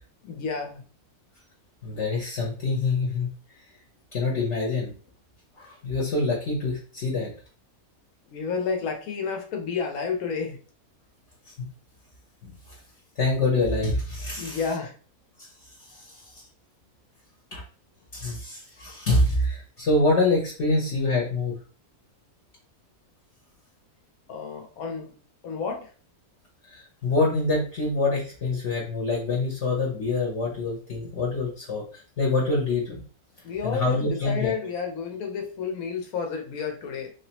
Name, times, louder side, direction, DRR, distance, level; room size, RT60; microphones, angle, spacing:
voice 1, 0.2-0.8 8.3-10.6 14.4-14.9 24.3-25.1 25.4-25.9 33.4-37.1, left 5 dB, 75° left, 3 dB, 1.3 m, -30 dB
voice 2, 1.8-3.3 4.1-4.9 5.6-7.3 11.6-11.7 12.4-12.5 13.2-14.6 15.4-15.5 15.9-16.2 17.5-17.6 18.1-21.5 26.7-33.0 33.6-34.5, left 2 dB, 55° left, -2 dB, 1.2 m, -25 dB
3.3 x 3.2 x 2.9 m, 0.39 s
omnidirectional pair, 1.6 m